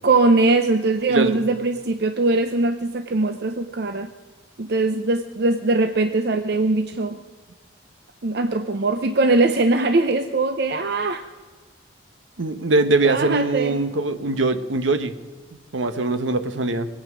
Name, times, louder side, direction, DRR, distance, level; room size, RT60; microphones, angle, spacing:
voice 1, 0.0-4.1 4.6-7.2 8.2-11.2 13.0-13.8, right 3 dB, 55° right, 8 dB, 0.6 m, -21 dB
voice 2, 12.4-15.1 15.7-16.9, right 3 dB, 85° right, 10 dB, 1.0 m, -22 dB
21.0 x 8.7 x 6.1 m, 1.4 s
head